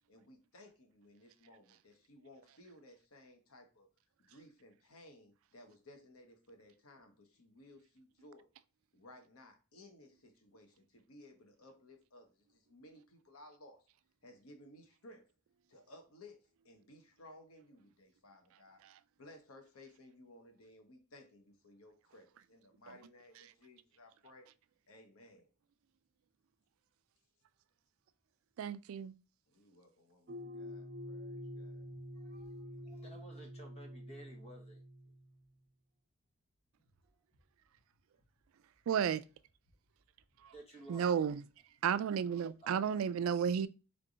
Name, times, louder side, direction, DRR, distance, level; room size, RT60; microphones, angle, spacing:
voice 1, 0.0-3.9 4.2-8.5 8.9-13.8 14.2-15.3 15.7-18.8 19.2-24.5 24.9-25.5 29.5-31.9, left 1 dB, 90° left, 1.1 m, -59 dB
voice 2, 28.6-29.1 38.9-39.2 40.4-40.5 40.9-41.4 41.8-43.7, right 7 dB, 70° right, 0.3 m, -32 dB
sound 1, 30.3-35.5, equal, 50° right, 0.7 m, -47 dB
voice 3, 31.8-34.8 36.8-36.9 37.3-37.4 40.5-41.1 42.6-42.8, right 1 dB, 30° left, 1.1 m, -55 dB
3.7 x 3.4 x 3.8 m
head